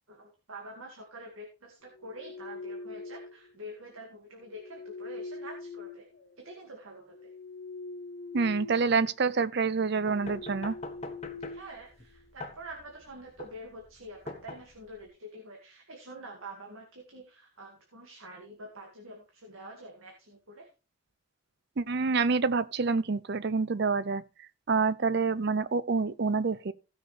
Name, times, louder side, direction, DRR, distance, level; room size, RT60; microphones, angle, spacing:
voice 1, 0.1-6.1 6.4-7.3 11.5-20.7, right 1 dB, 75° right, 2.2 m, -46 dB
sound 1, 2.0-3.5 4.5-6.6 7.1-9.0 9.3-9.5 10.0-12.3, left 3 dB, 50° left, 1.0 m, -43 dB
voice 2, 8.3-10.7 21.8-24.2 24.7-26.7, right 4 dB, 50° right, 0.6 m, -27 dB
sound 2, 10.1-15.1, left 2 dB, 30° left, 1.4 m, -44 dB
16.5 x 6.5 x 3.4 m
head